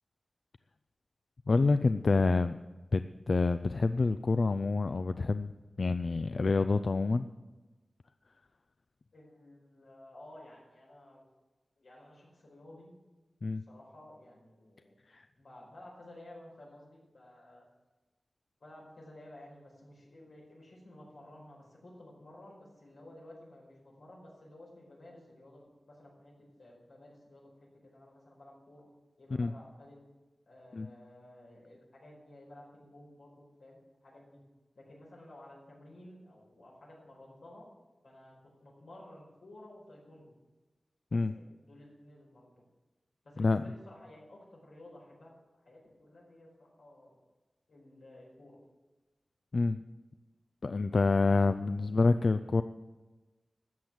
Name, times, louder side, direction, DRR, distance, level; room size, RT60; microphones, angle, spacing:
voice 1, 1.5-2.6 2.9-3.0 3.3-5.5 5.8-7.3 13.4-13.6 15.1-15.2 29.4-29.5 30.7-30.9 41.1-41.3 43.4-43.6 49.5-49.8 50.6-52.6, left 3 dB, 60° left, 11 dB, 0.4 m, -27 dB
voice 2, 9.1-11.2 11.8-12.9 13.6-14.9 15.3-17.6 18.6-28.9 29.2-30.0 30.5-34.4 34.7-37.7 38.0-40.3 41.1-42.5 43.2-47.2 47.7-48.6 51.2-52.4, left 1 dB, 90° left, -3 dB, 5.1 m, -54 dB
13.5 x 7.9 x 7.5 m, 1.2 s
wide cardioid pair, 70°, 0 cm